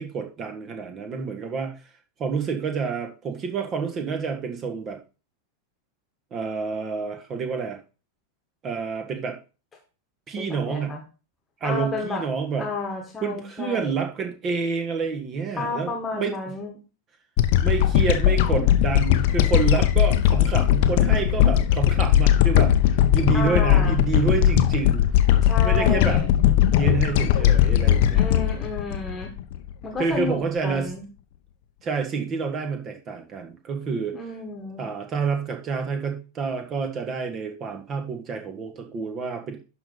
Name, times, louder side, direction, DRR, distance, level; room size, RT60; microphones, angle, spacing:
voice 1, 0.0-1.7 2.2-5.0 6.3-7.8 8.6-9.4 10.3-10.9 11.6-12.7 13.2-16.4 17.6-22.7 23.1-25.1 25.6-26.2 26.6-28.2 30.0-30.9 31.8-34.2 34.8-39.6, right 5 dB, 30° right, 5 dB, 1.6 m, -28 dB
voice 2, 10.4-11.0 11.6-12.2 12.6-14.0 15.6-16.7 23.3-24.0 25.4-26.3 28.1-29.3 29.8-31.0 34.1-34.8, left 4 dB, 15° left, 2 dB, 1.5 m, -31 dB
sound 1, 17.4-29.8, left 11 dB, 50° left, 0.7 m, -19 dB
11.0 x 4.0 x 3.9 m, 0.33 s
figure-of-eight pair, 90°, 0 cm